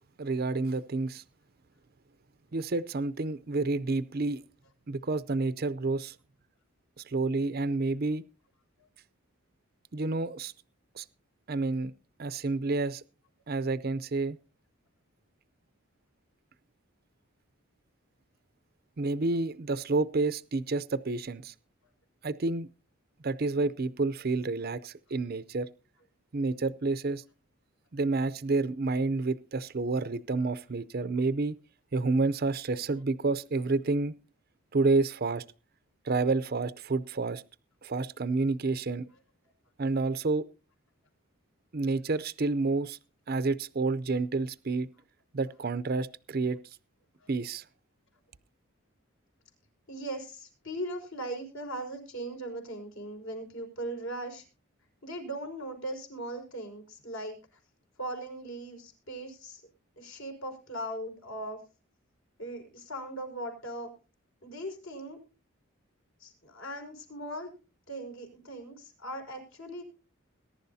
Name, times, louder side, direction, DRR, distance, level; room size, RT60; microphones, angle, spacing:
voice 1, 0.2-1.2 2.5-4.4 4.9-6.2 7.0-8.2 9.9-10.5 10.9-11.0 11.5-11.9 12.2-13.0 13.5-14.4 19.0-21.5 22.2-22.7 23.2-25.7 26.3-27.2 27.9-31.6 31.9-34.1 34.7-35.4 36.0-37.4 37.8-39.1 39.8-40.5 41.7-43.0 43.3-44.9 45.3-46.6 47.3-47.6, right 3 dB, 45° right, 0.5 m, -29 dB
voice 2, 49.9-54.4 55.0-57.6 58.0-59.6 60.0-61.6 62.4-63.9 64.4-65.2 66.2-67.5 67.9-69.8, right 1 dB, 65° left, 5.2 m, -39 dB
21.5 x 11.0 x 2.7 m
head